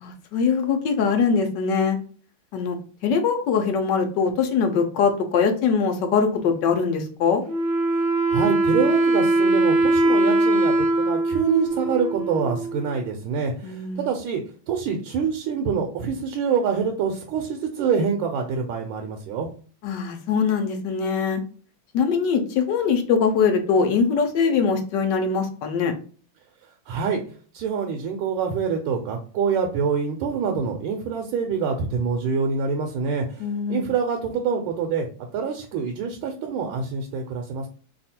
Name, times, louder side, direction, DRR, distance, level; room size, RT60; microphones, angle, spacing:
voice 1, 0.0-2.0 2.5-2.8 3.0-7.4 13.6-14.1 19.8-21.4 21.9-25.9 33.4-33.9, left 5 dB, 70° left, 5 dB, 1.1 m, -22 dB
Wind instrument woodwind instrument, 7.5-13.0, right 2 dB, 60° right, 0.4 m, -21 dB
voice 2, 8.3-14.4 14.7-19.5 26.9-27.2 27.5-35.1 35.3-37.7, right 6 dB, 80° right, 3 dB, 1.4 m, -26 dB
3.3 x 2.4 x 4.2 m, 0.41 s
omnidirectional pair, 2.3 m